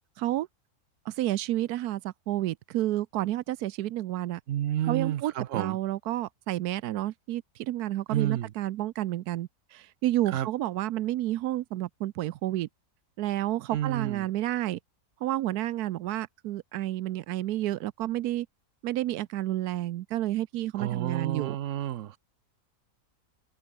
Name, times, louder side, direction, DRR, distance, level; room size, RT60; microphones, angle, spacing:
voice 1, 0.2-0.5 1.1-4.4 4.9-12.7 13.2-14.8 15.2-18.5 18.8-21.6, right 14 dB, 80° right, 1.1 m, -30 dB
voice 2, 4.5-5.8 8.1-8.5 10.3-10.5 13.7-14.3 20.8-22.2, right 11 dB, 65° right, 0.9 m, -30 dB
open air
omnidirectional pair, 1.6 m